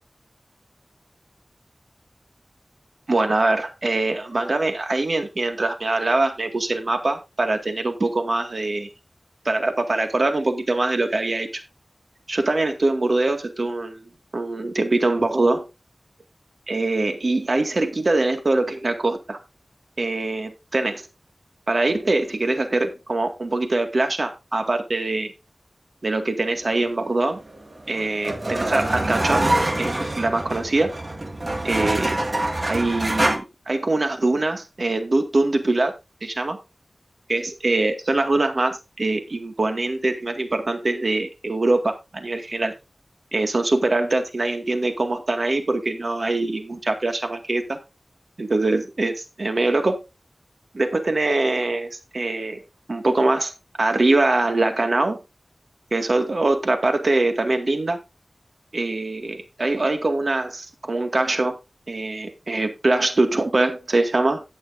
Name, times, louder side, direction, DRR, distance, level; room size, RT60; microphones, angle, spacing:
voice 1, 3.1-8.9 9.5-11.5 12.3-15.7 16.7-19.4 20.0-21.1 21.7-25.3 26.0-27.4 27.9-29.5 29.8-31.0 31.6-32.2 32.7-35.9 36.2-36.6 37.3-42.7 43.3-47.8 48.4-50.0 50.7-52.6 52.9-53.5 53.8-55.2 55.9-58.0 58.7-61.6 61.9-64.4, right 2 dB, 60° right, 6 dB, 2.0 m, -23 dB
sound 1, 27.5-33.4, right 1 dB, 40° right, 2.0 m, -25 dB
18.0 x 6.6 x 2.7 m, 0.24 s
wide cardioid pair, 75°, 0 cm